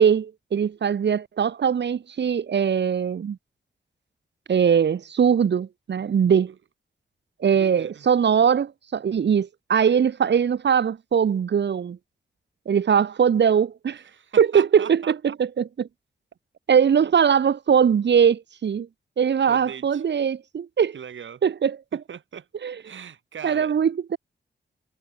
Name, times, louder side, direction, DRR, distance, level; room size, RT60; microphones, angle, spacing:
voice 1, 0.0-3.4 4.5-6.5 7.4-12.0 12.7-14.0 14.4-15.1 15.6-15.9 16.7-18.9 19.2-21.0 21.4-21.8 22.6-22.7 23.4-24.2, right 7 dB, 70° right, 1.4 m, -21 dB
voice 2, 7.5-8.1 14.1-15.1 19.5-20.0 20.9-21.4 21.9-22.5 22.8-23.8, right 8 dB, 90° right, 6.7 m, -39 dB
wide cardioid pair, 110°, 19 cm